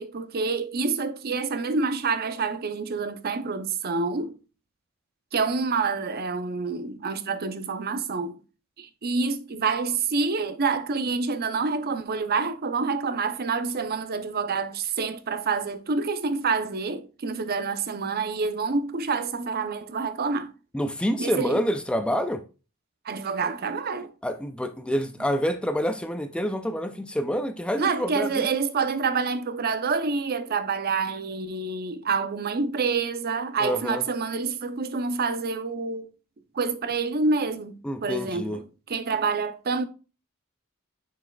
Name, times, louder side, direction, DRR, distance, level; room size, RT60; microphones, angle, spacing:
voice 1, 0.0-4.4 5.3-8.4 8.8-20.5 21.2-21.6 23.0-24.1 27.8-36.1 36.5-37.7 38.0-38.6 38.9-39.9, right 4 dB, 45° right, 0.6 m, -27 dB
voice 2, 20.7-22.4 24.2-28.5 33.6-34.0 37.8-38.6, equal, 5° left, 0.4 m, -27 dB
6.8 x 6.1 x 2.3 m
head